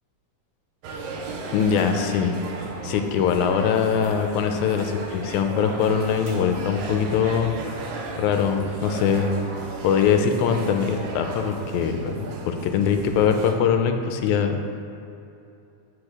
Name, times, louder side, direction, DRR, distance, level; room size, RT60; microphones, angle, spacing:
sound 1, 0.8-13.5, right 3 dB, 80° right, 2.0 m, -35 dB
voice 1, 1.5-2.4 2.8-7.6 8.2-9.3 9.8-12.2 12.5-14.6, left 7 dB, 85° left, 6 dB, 1.9 m, -22 dB
8.0 x 4.9 x 3.6 m, 2.7 s
omnidirectional pair, 3.4 m